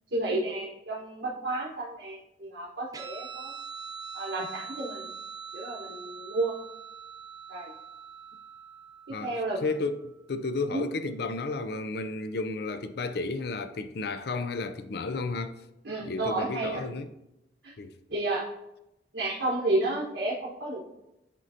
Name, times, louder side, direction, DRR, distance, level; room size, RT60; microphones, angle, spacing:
voice 1, 0.1-3.5 4.1-5.1 5.5-6.6 7.5-7.7 9.1-9.7 10.7-10.8 15.8-16.8 17.6-17.7 18.1-18.5 19.1-20.8, right 2 dB, 75° right, 1.4 m, -31 dB
Guitar, 2.9-9.9, right 6 dB, 20° right, 0.6 m, -43 dB
voice 2, 9.1-15.6 16.0-17.1 17.8-17.9, left 3 dB, 60° left, 0.5 m, -32 dB
11.0 x 3.8 x 2.8 m
head